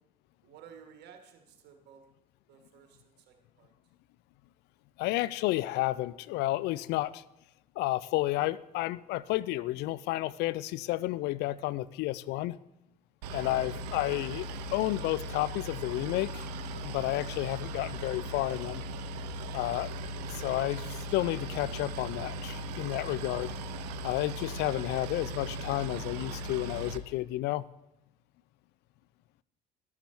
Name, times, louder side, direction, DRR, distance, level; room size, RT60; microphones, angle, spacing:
voice 1, 0.4-2.0 2.5-3.7, right 8 dB, 55° right, 5 dB, 1.6 m, -54 dB
voice 2, 5.0-7.2 7.8-12.6 13.3-16.5 16.7-18.8 19.5-19.9 20.3-23.6 24.0-27.6, left 17 dB, 55° left, 18 dB, 0.4 m, -31 dB
Boat Water vehicle, 13.2-27.0, right 1 dB, 70° right, 0.6 m, -38 dB
12.0 x 12.0 x 3.0 m, 0.87 s
figure-of-eight pair, 60°, 21 cm